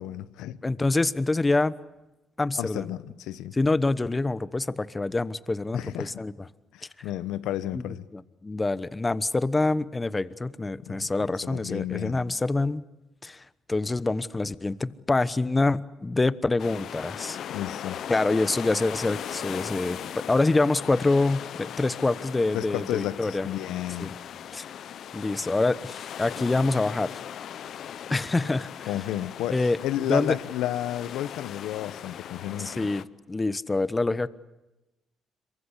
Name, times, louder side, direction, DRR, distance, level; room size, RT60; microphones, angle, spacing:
voice 1, 0.0-0.6 2.6-3.5 5.7-6.2 6.7-8.1 10.8-12.2 17.5-18.0 22.5-24.1 28.9-32.8, left 13 dB, 90° left, 1.2 m, -32 dB
voice 2, 0.6-1.7 2.4-2.9 3.6-6.3 7.7-7.8 8.1-12.8 13.2-13.4 13.7-17.4 18.1-20.0 20.3-23.5 24.0-24.1 24.5-24.6 25.1-27.2 28.1-28.9 29.5-29.8 30.1-30.3 32.6-34.3, left 2 dB, 20° left, 1.0 m, -26 dB
sound 1, 16.6-33.0, left 9 dB, 65° left, 1.0 m, -39 dB
26.5 x 23.5 x 8.3 m
cardioid pair, 90°, 0 cm